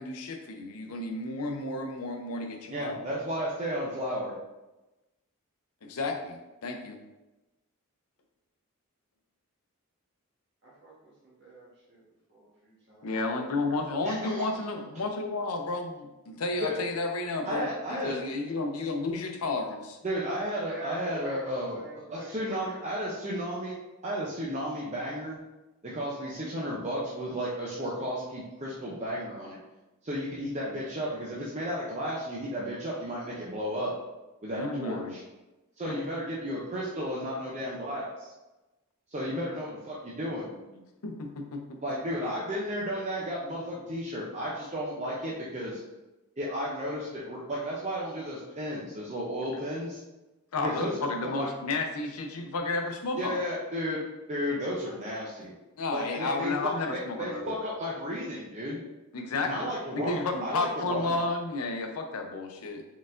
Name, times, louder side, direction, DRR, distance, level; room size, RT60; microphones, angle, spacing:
voice 1, 0.0-3.0 5.8-7.0 13.0-20.0 34.6-35.1 35.9-36.0 39.3-39.4 41.0-41.8 50.5-53.4 55.8-57.5 59.1-62.8, left 3 dB, 85° left, 4 dB, 0.6 m, -32 dB
voice 2, 2.7-4.4 14.0-14.5 16.6-16.8 17.5-18.2 20.0-21.8 22.1-23.7 24.0-25.4 25.8-29.6 30.0-33.9 34.4-35.2 35.8-38.3 39.1-40.6 41.8-45.8 46.4-50.0 50.6-51.5 53.2-54.0 54.3-55.5 55.9-58.8 59.4-61.1, equal, 30° right, -5 dB, 0.5 m, -33 dB
voice 3, 10.6-12.0 12.3-14.2 20.6-21.4 21.7-22.8, right 2 dB, 55° right, -6 dB, 1.2 m, -47 dB
4.2 x 4.0 x 2.5 m, 1.1 s
head